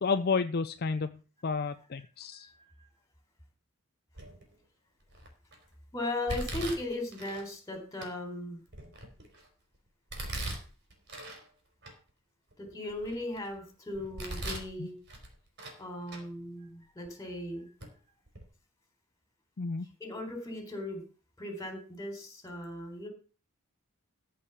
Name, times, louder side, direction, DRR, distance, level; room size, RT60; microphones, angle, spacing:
voice 1, 0.0-2.5 14.8-14.9 19.6-19.9, left 4 dB, 45° left, 10 dB, 0.5 m, -31 dB
voice 2, 2.3-2.9 5.9-8.6 12.6-15.0 15.8-17.7 20.0-21.0 21.4-23.1, left 1 dB, 15° left, 4 dB, 3.9 m, -38 dB
Domestic sounds home sounds, 4.2-4.5 5.1-5.5 6.3-7.4 8.0-8.1 8.7-9.5 10.1-11.4 11.8-11.9 12.5-13.5 13.9-14.7 15.1-15.8 16.1-16.2 17.0-17.1 17.8-17.9 18.3-18.4, right 1 dB, 55° right, 3.8 m, -40 dB
14.0 x 5.0 x 7.2 m, 0.37 s
head